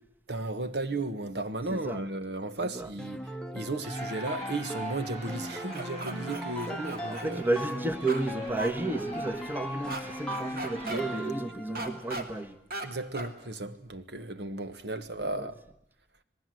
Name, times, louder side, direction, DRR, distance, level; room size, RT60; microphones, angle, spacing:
voice 1, 0.3-3.2 3.5-7.4 12.8-15.6, right 2 dB, 75° right, 1.4 m, -34 dB
voice 2, 1.7-2.0 2.6-2.9 6.2-6.8 7.1-12.6 15.2-15.5, right 2 dB, 10° right, 1.3 m, -33 dB
sound 1, 3.0-12.2, equal, 5° left, 0.9 m, -38 dB
Crowd, 3.8-11.5, right 1 dB, 40° right, 6.6 m, -45 dB
sound 2, 5.7-7.3 8.1-8.2 8.6-8.7 9.9-10.0 10.3-11.0 11.7-12.2 12.7-12.9 13.1-13.3, right 2 dB, 55° right, 2.6 m, -36 dB
27.0 x 19.5 x 7.8 m
head